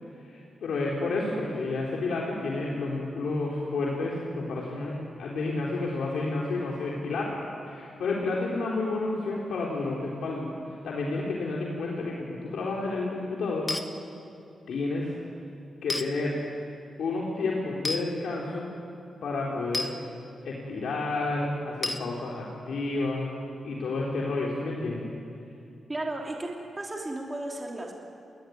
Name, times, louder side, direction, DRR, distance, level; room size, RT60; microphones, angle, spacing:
voice 1, 0.3-4.9 5.2-7.4 7.7-10.5 10.8-13.7 14.7-15.1 15.8-16.3 17.0-18.7 19.2-19.9 20.4-23.3 23.6-25.1, left 3 dB, 80° left, -3 dB, 3.9 m, -30 dB
sound 1, 13.7-13.9 15.9-16.1 17.8-18.0 19.7-19.9 21.8-22.1, left 2 dB, 25° left, 1.5 m, -30 dB
voice 2, 25.9-26.5 26.8-28.0, right 2 dB, 20° right, -1 dB, 3.2 m, -34 dB
29.5 x 21.5 x 9.4 m, 2.6 s
wide cardioid pair, 135°, 0 cm